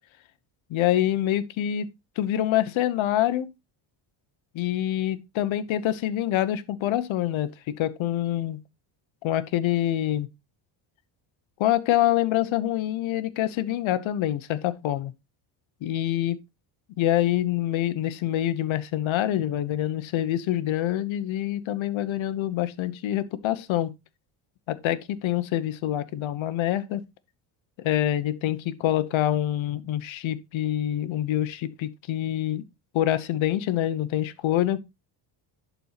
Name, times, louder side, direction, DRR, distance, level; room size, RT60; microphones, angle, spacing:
voice 1, 0.7-1.9 2.2-3.5 4.5-8.6 9.2-10.3 11.6-15.1 15.8-16.4 17.0-23.9 24.7-27.0 27.8-32.6 32.9-34.8, left 12 dB, 65° left, 1.1 m, -26 dB
11.0 x 4.7 x 4.1 m
cardioid pair, 105°, 50 cm